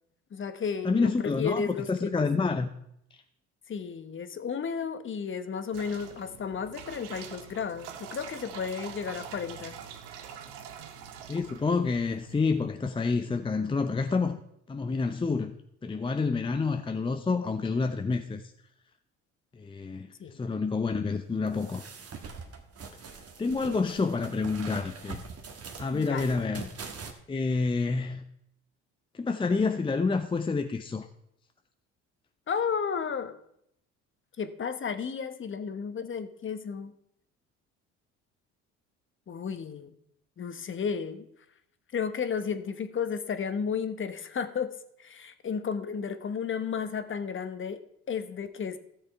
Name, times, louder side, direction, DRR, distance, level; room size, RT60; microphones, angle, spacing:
voice 1, 0.3-2.3 3.7-9.7 20.2-20.4 25.9-26.4 32.5-33.3 34.4-36.9 39.3-39.9 40.4-41.2 41.9-47.8 48.1-48.8, left 6 dB, 35° left, 11 dB, 1.1 m, -33 dB
voice 2, 0.8-2.7 11.3-14.4 14.7-15.5 15.8-18.4 19.5-20.1 20.3-21.8 23.4-25.2 25.8-26.7 27.3-28.2 29.1-31.1, left 4 dB, 15° left, 7 dB, 0.6 m, -28 dB
sound 1, 5.7-12.7, right 8 dB, 75° right, 1.1 m, -45 dB
sound 2, 21.5-27.1, right 5 dB, 40° right, 1.7 m, -43 dB
13.5 x 6.6 x 4.6 m, 0.75 s
hypercardioid pair, 60°, 35 cm